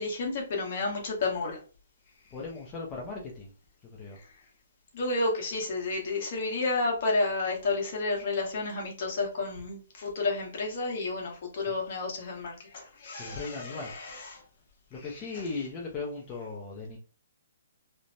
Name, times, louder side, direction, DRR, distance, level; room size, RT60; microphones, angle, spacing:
voice 1, 0.0-1.6 4.9-14.4 15.0-15.4, left 3 dB, 45° left, 1.1 m, -31 dB
voice 2, 2.3-3.5 3.8-4.2 11.7-11.8 13.2-13.9 14.9-17.0, left 3 dB, 20° left, 0.5 m, -38 dB
3.1 x 2.0 x 2.6 m
hypercardioid pair, 160°, 0 cm